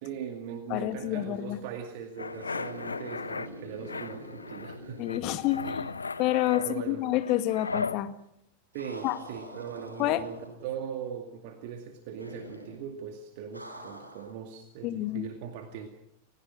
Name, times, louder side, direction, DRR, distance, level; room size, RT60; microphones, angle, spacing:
voice 1, 0.0-5.2 6.6-7.0 8.7-15.9, right 7 dB, 50° right, 5 dB, 2.2 m, -40 dB
voice 2, 0.7-1.6 5.0-5.9 6.2-8.1 9.0-9.2 10.0-10.2 14.8-15.3, left 14 dB, 40° left, 10 dB, 1.9 m, -28 dB
sound 1, 2.2-3.5 3.9-4.8 5.1-8.0, left 4 dB, 75° left, 0.9 m, -36 dB
sound 2, 2.2-6.4 6.6-6.7 8.7-10.8 12.2-12.8 13.5-14.4, equal, 85° right, 4.5 m, -45 dB
30.0 x 16.0 x 6.3 m, 0.77 s
figure-of-eight pair, 90°, 0 cm